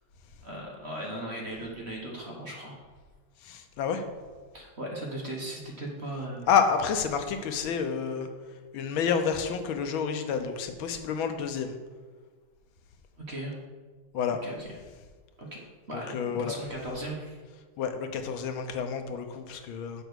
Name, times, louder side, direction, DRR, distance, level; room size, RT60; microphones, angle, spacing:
voice 1, 0.4-2.8 4.5-6.5 13.2-13.5 14.1-14.7 15.4-15.5 15.9-17.4, right 1 dB, 35° right, -2 dB, 1.6 m, -37 dB
voice 2, 3.4-4.0 6.5-8.3 8.7-11.8 14.1-14.4 15.9-16.5 17.8-20.0, left 6 dB, 85° left, 7 dB, 1.6 m, -29 dB
7.0 x 5.2 x 6.2 m, 1.4 s
omnidirectional pair, 2.2 m